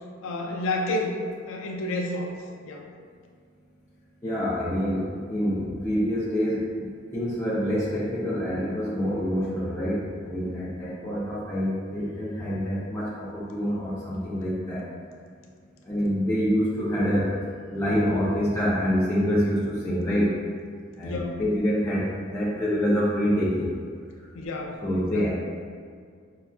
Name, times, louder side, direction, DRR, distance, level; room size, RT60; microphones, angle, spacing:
voice 1, 0.2-1.1 1.5-2.3 2.6-2.9 21.0-21.4 24.3-25.3, left 2 dB, 80° left, 1 dB, 0.4 m, -30 dB
voice 2, 4.2-14.9 15.8-17.4 17.7-20.4 21.0-23.8 24.2-24.3 24.8-25.3, equal, 15° left, -8 dB, 0.4 m, -26 dB
5.4 x 2.3 x 2.2 m, 2.1 s
head